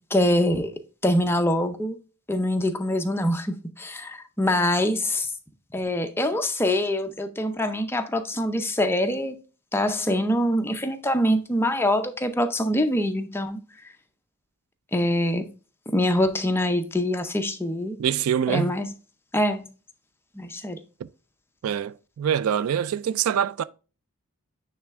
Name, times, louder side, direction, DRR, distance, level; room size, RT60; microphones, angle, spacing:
voice 1, 0.1-0.7 1.0-2.0 2.3-5.3 5.7-9.4 9.7-13.6 14.9-15.5 15.9-18.0 18.5-18.9 19.3-19.7 20.4-20.8, left 1 dB, 10° left, 0.6 m, -24 dB
voice 2, 18.0-18.7 21.6-23.6, right 8 dB, 65° right, 0.3 m, -24 dB
9.3 x 3.4 x 3.5 m
head